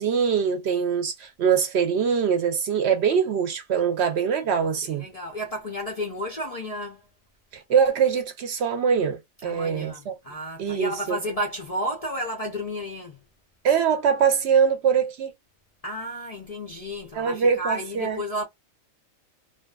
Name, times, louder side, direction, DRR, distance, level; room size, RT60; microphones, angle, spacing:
voice 1, 0.0-5.0 7.5-10.1 10.6-11.2 13.6-15.3 17.1-18.2, right 7 dB, 65° right, 0.8 m, -23 dB
voice 2, 4.6-7.1 9.4-13.2 15.8-18.4, equal, 70° left, 0.3 m, -32 dB
2.5 x 2.2 x 2.3 m
omnidirectional pair, 1.4 m